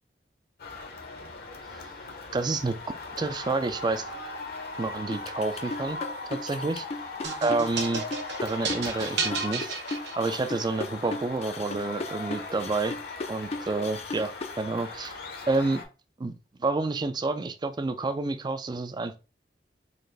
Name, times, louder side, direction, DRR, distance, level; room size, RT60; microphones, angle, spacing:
sound 1, 0.6-15.8, left 3 dB, 60° left, 0.9 m, -39 dB
voice 1, 2.3-2.8 3.2-4.1 4.8-6.0 6.4-6.8 7.4-8.0 8.4-9.8 10.2-13.0 13.3-15.1 15.5-15.8 16.2-16.3 16.6-19.2, right 3 dB, 25° right, 0.4 m, -29 dB
sound 2, 5.1-14.6, left 3 dB, 35° left, 0.4 m, -36 dB
sound 3, 7.2-10.6, right 5 dB, 75° right, 0.8 m, -33 dB
3.9 x 2.5 x 3.2 m
head